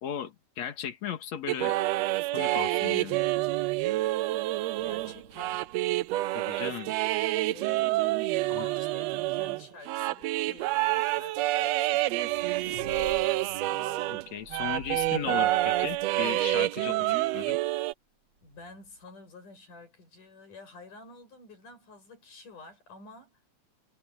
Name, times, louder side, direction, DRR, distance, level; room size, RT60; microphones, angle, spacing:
voice 1, 0.0-1.8 2.3-3.2 6.3-6.9 8.5-8.7 14.1-17.6, left 9 dB, 60° left, 2.9 m, -36 dB
sound 1, 1.5-14.3 14.5-17.9, right 17 dB, 85° right, 1.5 m, -28 dB
sound 2, 3.2-7.0 7.7-8.4 9.5-9.6 10.3-10.5 11.7-11.8 11.9-16.4 18.3-19.0, right 4 dB, 45° right, 4.5 m, -49 dB
voice 2, 4.8-5.7 7.5-8.2 8.5-13.4 16.8-17.5 18.4-23.4, left 3 dB, 90° left, 9.7 m, -50 dB
omnidirectional pair, 3.5 m